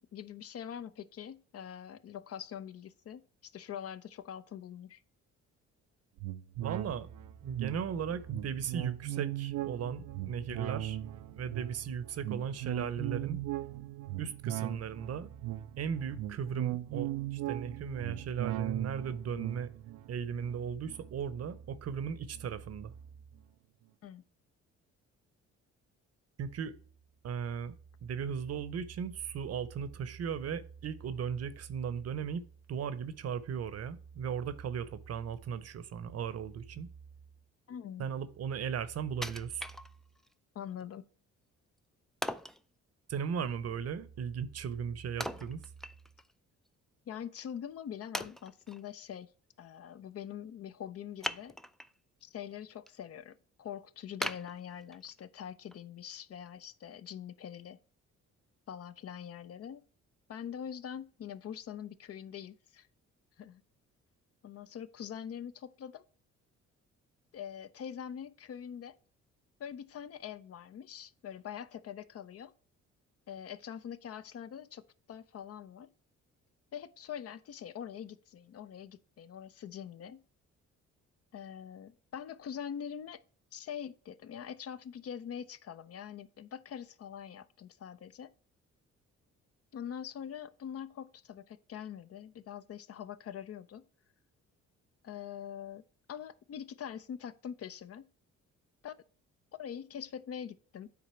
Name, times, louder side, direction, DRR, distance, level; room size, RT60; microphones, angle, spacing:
voice 1, 0.1-5.0 24.0-24.2 37.7-38.1 40.5-41.1 47.1-49.3 49.6-51.5 52.2-57.8 58.7-59.9 60.3-62.9 63.4-63.6 64.4-66.0 67.3-69.0 69.6-72.5 73.3-74.8 75.1-75.9 76.7-80.2 81.3-83.2 83.5-88.3 89.7-93.8 95.0-98.1 98.8-99.0 99.5-100.9, left 9 dB, 50° left, 0.6 m, -44 dB
sound 1, 6.2-21.9 22.3-22.4, right 15 dB, 90° right, 0.6 m, -39 dB
voice 2, 6.6-7.1 7.4-11.0 11.3-13.4 14.2-15.3 15.8-19.7 20.1-22.9 26.4-26.7 27.2-27.7 28.0-36.9 38.0-39.6 43.1-45.6, right 7 dB, 55° right, 0.8 m, -37 dB
Wood, 39.2-40.3 40.8-40.9 42.2-42.6 45.2-46.3 46.7-46.8 47.4-47.5 48.1-48.8 51.2-52.0 52.4-52.9 53.3-53.4 54.2-55.2 55.7-55.8, equal, ahead, 0.3 m, -39 dB
9.5 x 3.9 x 4.3 m
cardioid pair, 90°, 30 cm